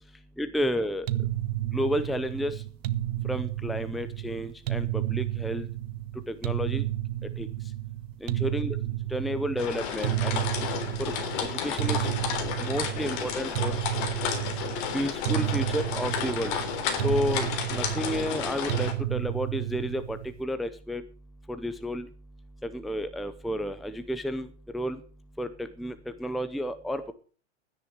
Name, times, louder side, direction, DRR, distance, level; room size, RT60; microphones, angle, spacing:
voice 1, 0.4-1.1 1.7-2.5 3.2-5.7 6.3-6.8 7.4-7.5 8.2-8.8 9.1-10.4 11.0-11.1 11.5-12.1 12.6-13.8 14.9-16.6 17.0-21.0 21.5-22.1 22.6-24.5 24.7-25.0 25.4-25.9 26.2-27.1, equal, ahead, 10 dB, 0.6 m, -31 dB
sound 1, 1.1-20.4, right 14 dB, 65° right, 1.0 m, -31 dB
sound 2, 9.6-18.9, left 7 dB, 50° left, 3.5 m, -32 dB
13.0 x 9.9 x 6.6 m, 0.40 s
supercardioid pair, 155°, 33 cm